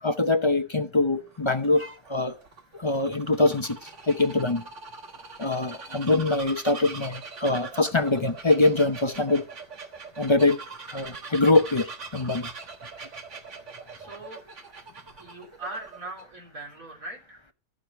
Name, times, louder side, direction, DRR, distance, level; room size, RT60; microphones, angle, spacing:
voice 1, 0.0-2.3 2.8-4.6 5.4-9.5 10.2-10.6 10.9-12.5, left 2 dB, 30° left, 0.6 m, -23 dB
Bird vocalization bird call bird song, 1.2-16.2, right 4 dB, 60° right, 1.7 m, -42 dB
voice 2, 13.9-14.4 15.2-17.4, right 2 dB, 80° right, 3.9 m, -40 dB
15.0 x 4.9 x 7.0 m
omnidirectional pair, 1.5 m